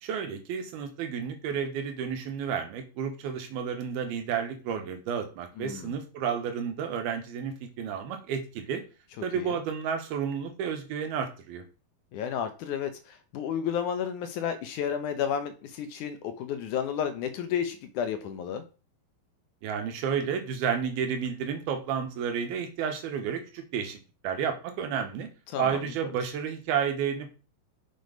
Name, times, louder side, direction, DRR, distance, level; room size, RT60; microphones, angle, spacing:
voice 1, 0.0-8.8 9.2-11.6 19.6-24.0 24.2-25.3 25.6-27.3, right 7 dB, 85° right, 6 dB, 3.3 m, -31 dB
voice 2, 5.6-5.9 9.3-9.6 12.1-18.6 25.5-26.1, left 8 dB, 70° left, 8 dB, 2.0 m, -32 dB
6.8 x 6.3 x 5.2 m, 0.34 s
omnidirectional pair, 4.3 m